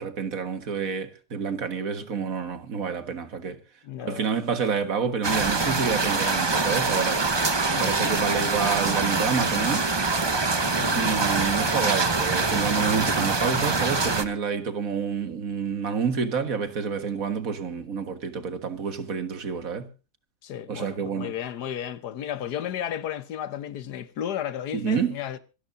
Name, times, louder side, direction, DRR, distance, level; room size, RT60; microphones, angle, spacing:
voice 1, 0.0-3.6 4.0-7.3 7.7-9.9 10.9-19.9 20.7-21.3 24.7-25.2, right 6 dB, 60° right, 1.9 m, -28 dB
voice 2, 3.8-4.3 7.7-8.0 10.6-11.0 20.4-25.4, left 10 dB, 90° left, 1.6 m, -33 dB
sound 1, 5.2-14.2, right 3 dB, 25° right, 0.7 m, -24 dB
26.5 x 12.5 x 2.6 m
omnidirectional pair, 1.7 m